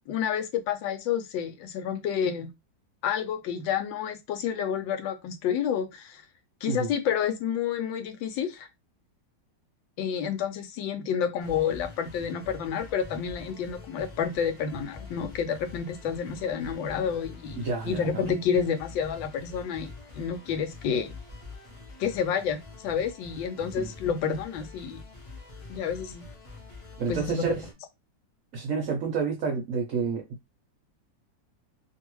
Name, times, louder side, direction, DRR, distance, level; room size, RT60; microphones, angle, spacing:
voice 1, 0.1-2.5 3.0-6.2 6.6-8.7 10.0-21.1 22.0-25.0 25.7-26.2 27.1-27.6, left 7 dB, 85° left, 1.3 m, -29 dB
sound 1, 11.4-27.7, left 3 dB, 40° left, 0.4 m, -45 dB
voice 2, 17.6-18.2 23.8-23.9 27.0-27.6 28.5-30.3, right 5 dB, 65° right, 0.8 m, -29 dB
2.8 x 2.7 x 3.0 m
omnidirectional pair, 2.0 m